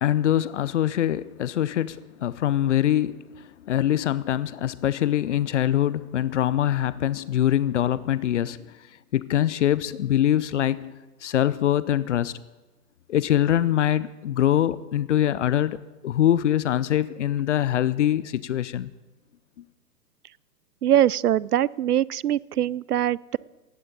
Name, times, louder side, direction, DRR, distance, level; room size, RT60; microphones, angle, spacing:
voice 1, 0.0-3.3 3.7-8.6 9.1-10.9 11.2-12.3 13.1-15.8 16.0-18.9, left 11 dB, 50° left, 17 dB, 0.7 m, -23 dB
voice 2, 20.8-23.4, right 11 dB, 75° right, 24 dB, 0.5 m, -22 dB
18.5 x 15.5 x 4.0 m, 1.1 s
figure-of-eight pair, 120°, 47 cm